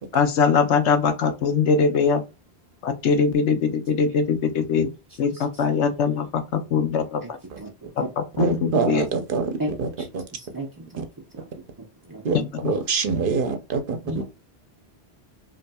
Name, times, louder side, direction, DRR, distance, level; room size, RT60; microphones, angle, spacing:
voice 1, 0.1-2.2 2.8-4.9 5.2-7.4 8.0-9.1 12.3-12.7, left 5 dB, 90° left, 1.0 m, -22 dB
voice 2, 7.6-8.1 8.4-8.5 9.6-10.1 10.3-11.0 11.3-11.5 12.1-12.2 14.0-14.2, right 1 dB, 25° right, 0.5 m, -34 dB
voice 3, 8.4-9.5 9.8-9.9 10.1-10.2 11.0-11.1 12.2-12.4 12.6-14.2, right 4 dB, 55° right, 0.8 m, -24 dB
5.4 x 2.7 x 2.3 m
omnidirectional pair, 1.1 m